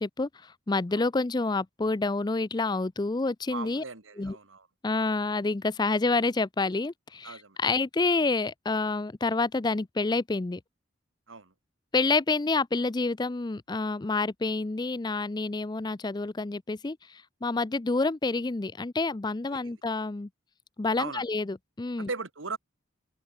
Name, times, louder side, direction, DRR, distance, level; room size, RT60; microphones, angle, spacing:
voice 1, 0.0-3.8 4.2-4.4 4.8-10.6 11.9-20.3 20.8-22.1, left 3 dB, 20° left, 0.5 m, -28 dB
voice 2, 3.5-4.7 7.2-7.6 11.3-11.5 19.5-19.8 21.0-21.2 22.0-22.6, right 4 dB, 85° right, 2.3 m, -38 dB
open air
head